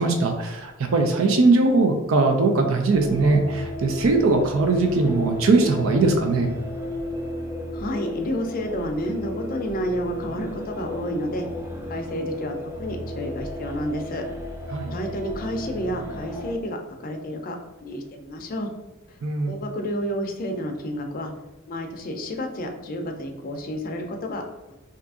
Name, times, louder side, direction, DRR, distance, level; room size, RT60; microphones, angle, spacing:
voice 1, 0.0-6.5 14.7-14.9 19.2-19.5, right 3 dB, 70° right, 4 dB, 0.4 m, -20 dB
sound 1, 2.9-16.5, left 1 dB, 10° right, 0.4 m, -34 dB
voice 2, 7.7-11.5 11.9-14.2 14.9-18.7 19.1-19.2 19.5-21.3 21.7-24.8, equal, 45° left, 3 dB, 0.5 m, -30 dB
2.7 x 2.5 x 3.5 m, 1.0 s
head